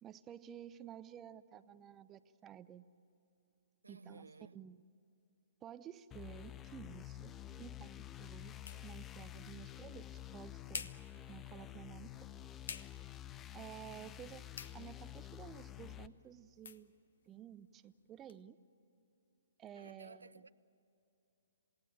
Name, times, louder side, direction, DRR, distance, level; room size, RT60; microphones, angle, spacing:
voice 1, 0.0-2.8 3.9-4.8 5.6-8.6 8.8-10.9 11.3-12.3 13.5-14.4 14.7-16.9 17.3-18.6 19.6-20.5, right 10 dB, 20° right, 0.7 m, -53 dB
voice 2, 3.8-4.6 19.7-20.5, right 3 dB, 80° right, 0.5 m, -56 dB
sound 1, 6.1-16.1, left 12 dB, 20° left, 0.6 m, -50 dB
sound 2, 10.1-18.4, left 6 dB, 60° left, 1.0 m, -54 dB
27.5 x 18.0 x 8.8 m
figure-of-eight pair, 125°, 0 cm